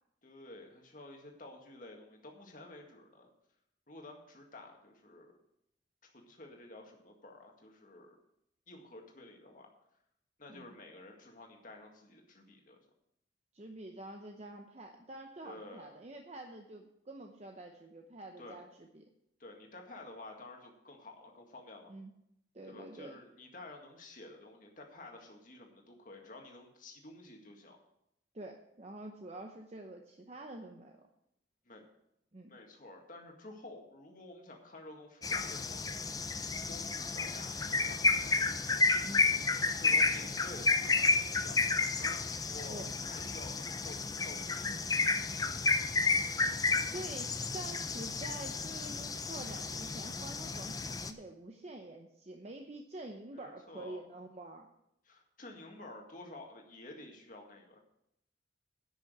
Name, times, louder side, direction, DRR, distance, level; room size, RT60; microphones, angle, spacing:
voice 1, 0.2-3.3 3.9-5.3 6.0-8.2 8.7-9.7 10.4-12.8 15.4-15.9 18.4-18.6 19.4-21.9 22.7-27.8 31.7-31.8 32.5-36.0 36.7-38.3 39.8-44.8 53.3-54.0 55.1-57.9, left 2 dB, 45° left, 1 dB, 1.9 m, -51 dB
voice 2, 13.5-19.1 21.9-22.1 22.5-23.2 28.3-31.0 32.3-32.5 39.0-39.3 42.7-42.9 46.8-54.7, right 2 dB, 35° right, 3 dB, 0.8 m, -47 dB
sound 1, 35.2-51.1, left 3 dB, 20° left, 0.5 m, -31 dB
10.5 x 6.2 x 7.8 m, 0.79 s
head